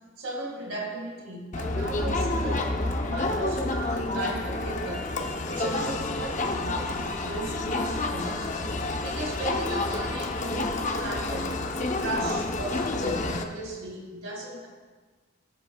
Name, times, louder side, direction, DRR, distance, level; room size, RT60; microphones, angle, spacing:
voice 1, 0.2-8.5 9.0-11.6 12.0-14.7, right 1 dB, 80° right, -1 dB, 2.1 m, -36 dB
Crowd, 1.5-13.4, left 2 dB, 35° left, 0.7 m, -29 dB
18.0 x 9.0 x 2.3 m, 1.4 s
head